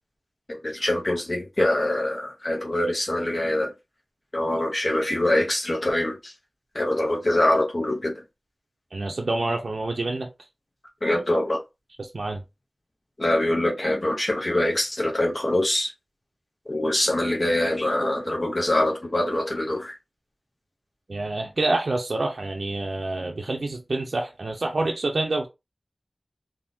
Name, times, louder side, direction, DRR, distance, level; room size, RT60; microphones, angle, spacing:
voice 1, 0.5-3.7 4.3-6.3 6.7-8.2 11.0-11.6 13.2-15.9 16.7-19.9, left 1 dB, 55° left, 0.7 m, -24 dB
voice 2, 8.9-10.3 12.0-12.4 21.1-25.5, right 2 dB, 80° right, 0.5 m, -27 dB
3.5 x 2.6 x 2.6 m
wide cardioid pair, 45°, 0 cm